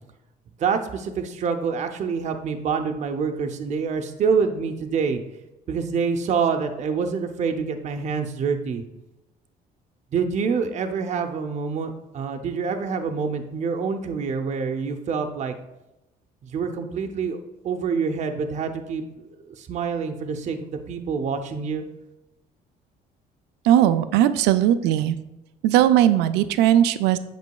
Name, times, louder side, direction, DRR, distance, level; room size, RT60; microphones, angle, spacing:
voice 1, 0.6-5.2 5.7-8.8 10.1-15.5 16.4-17.4 17.6-19.3 19.6-21.8, right 5 dB, 45° right, 5 dB, 0.6 m, -26 dB
voice 2, 23.6-25.2 25.6-27.2, right 11 dB, 90° right, 12 dB, 0.4 m, -18 dB
8.2 x 6.1 x 2.3 m, 0.92 s
cardioid pair, 110°, 17 cm